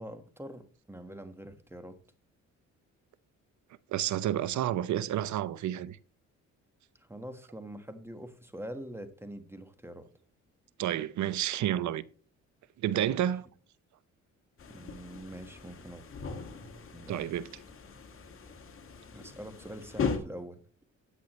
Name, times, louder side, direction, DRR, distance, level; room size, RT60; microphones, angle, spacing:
voice 1, 0.0-2.0 7.0-10.1 13.0-13.2 14.7-16.0 16.9-17.3 19.1-20.6, right 1 dB, 10° right, 1.4 m, -44 dB
voice 2, 3.9-6.0 10.8-12.0 12.8-13.5 17.1-17.5, right 12 dB, 70° right, 0.7 m, -30 dB
sound 1, 14.6-20.2, left 5 dB, 45° left, 2.0 m, -39 dB
13.5 x 8.3 x 3.1 m
cardioid pair, 90°, 30 cm